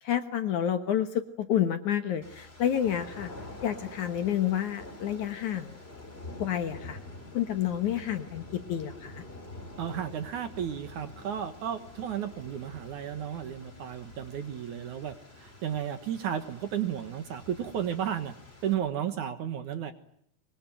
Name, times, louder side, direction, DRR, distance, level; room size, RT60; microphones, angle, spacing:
voice 1, 0.0-3.3 3.6-5.8 6.4-7.0 7.3-9.2, left 10 dB, 60° left, 9 dB, 2.3 m, -29 dB
sound 1, 2.2-18.7, left 2 dB, 15° left, 4.8 m, -47 dB
voice 2, 9.8-18.3 18.6-19.9, right 9 dB, 60° right, 10 dB, 2.4 m, -33 dB
24.0 x 23.5 x 9.2 m, 0.71 s
omnidirectional pair, 4.6 m